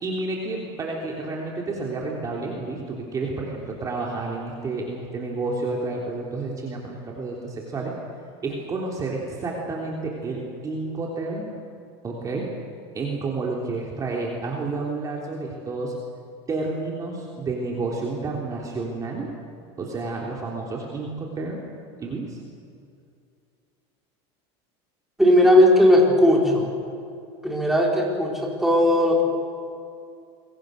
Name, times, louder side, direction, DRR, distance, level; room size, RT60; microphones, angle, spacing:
voice 1, 0.0-7.9 8.4-11.5 12.0-12.5 12.9-15.9 16.5-19.3 19.8-21.6 22.0-22.4, right 3 dB, 25° right, -2 dB, 3.4 m, -30 dB
voice 2, 25.2-26.7 27.4-29.2, left 1 dB, ahead, -2 dB, 4.8 m, -17 dB
28.0 x 23.0 x 6.6 m, 2.5 s
supercardioid pair, 140°, 15 cm